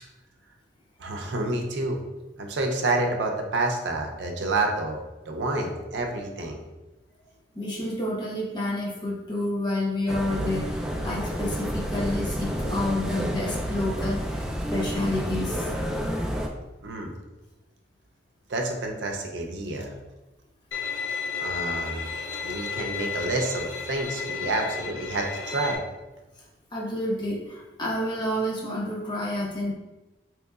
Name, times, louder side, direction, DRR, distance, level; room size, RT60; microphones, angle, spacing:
voice 1, 1.0-2.0 2.4-5.0 5.3-6.6 16.8-17.1 18.5-19.9 21.4-22.1 22.4-25.8, right 2 dB, 80° right, 2 dB, 0.5 m, -28 dB
voice 2, 7.5-14.4 14.7-15.7 26.7-29.7, left 1 dB, 25° left, -4 dB, 0.9 m, -29 dB
sound 1, 10.1-16.5, equal, 5° right, 0.3 m, -30 dB
Bowed string instrument, 20.7-25.8, left 5 dB, 70° left, 0.5 m, -33 dB
3.8 x 3.0 x 2.3 m, 1.1 s
head